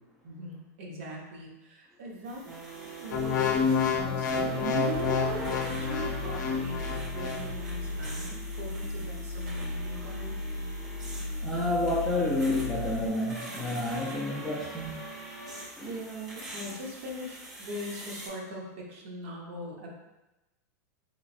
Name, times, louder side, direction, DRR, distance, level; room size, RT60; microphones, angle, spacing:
voice 1, 0.2-2.4 3.0-5.1 5.4-10.4 15.8-19.9, equal, 45° right, -1 dB, 0.7 m, -41 dB
sound 1, 2.2-18.3, right 2 dB, 80° right, 1.3 m, -42 dB
sound 2, 3.1-7.4 8.0-8.2, left 6 dB, 90° left, 0.5 m, -29 dB
sound 3, 4.9-13.1, left 1 dB, 40° left, 0.7 m, -36 dB
voice 2, 11.4-15.0 15.8-15.9, left 2 dB, 5° left, -8 dB, 0.3 m, -30 dB
3.3 x 3.0 x 2.5 m, 1.0 s
supercardioid pair, 175°, 10 cm